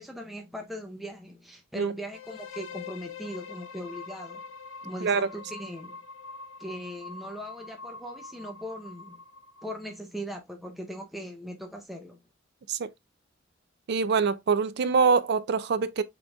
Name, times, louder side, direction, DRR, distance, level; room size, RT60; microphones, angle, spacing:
voice 1, 0.0-4.4 4.8-6.0 6.6-9.2 9.6-12.2, equal, ahead, 0.6 m, -39 dB
sound 1, 2.1-9.9, left 4 dB, 75° left, 0.6 m, -44 dB
voice 2, 13.9-16.0, right 5 dB, 55° right, 0.4 m, -24 dB
5.1 x 3.8 x 2.2 m
head